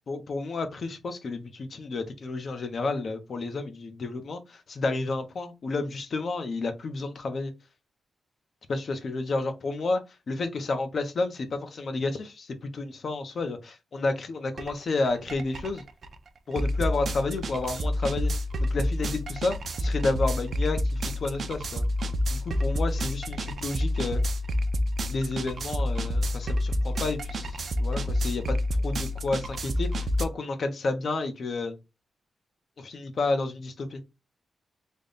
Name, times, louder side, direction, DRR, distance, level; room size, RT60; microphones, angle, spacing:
voice 1, 0.1-7.5 8.7-10.0 10.3-15.8 16.5-18.3 18.6-21.8 22.3-24.2 25.1-28.6 28.8-31.8 32.8-34.0, left 3 dB, 45° left, 0.6 m, -31 dB
sound 1, 14.6-14.7 15.0-30.2, left 1 dB, 50° right, 0.4 m, -28 dB
3.4 x 2.2 x 3.9 m
wide cardioid pair, 160°, 0 cm